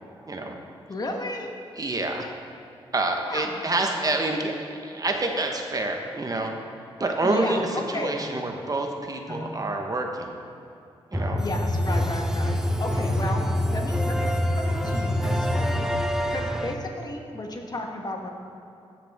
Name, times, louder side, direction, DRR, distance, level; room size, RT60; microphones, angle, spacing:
voice 1, 0.3-0.6 1.8-2.3 2.9-6.5 7.0-10.4 11.1-11.4, right 2 dB, 35° right, 2 dB, 1.2 m, -27 dB
voice 2, 0.9-1.5 3.3-3.6 7.2-8.3 9.3-9.6 11.4-13.4 13.7-14.3 14.6-15.8 16.3-18.3, left 1 dB, 40° left, 2 dB, 1.4 m, -33 dB
sound 1, 11.1-16.7, left 1 dB, 5° right, 0.9 m, -25 dB
15.0 x 6.8 x 3.6 m, 2.6 s
cardioid pair, 60°, 10 cm